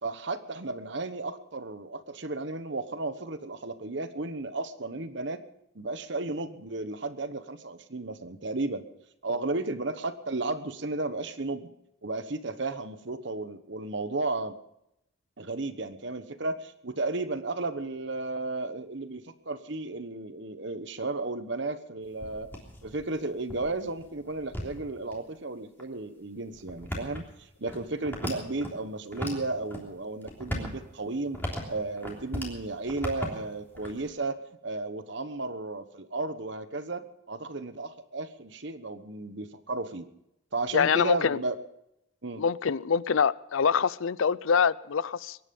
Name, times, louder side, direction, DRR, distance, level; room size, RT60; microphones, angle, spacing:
voice 1, 0.0-5.4 5.7-8.8 9.2-11.7 12.0-14.5 15.4-22.5 22.8-34.4 34.6-40.1 40.5-41.6 42.2-42.4, right 2 dB, 60° right, 11 dB, 1.1 m, -34 dB
sound 1, 22.1-25.1 25.8-25.9 26.5-28.7 29.1-29.8 30.2-32.6 32.8-34.1, equal, 10° left, 3.3 m, -37 dB
voice 2, 40.7-41.4 42.4-45.4, left 6 dB, 75° left, 20 dB, 0.5 m, -25 dB
23.0 x 11.0 x 5.4 m, 0.81 s
head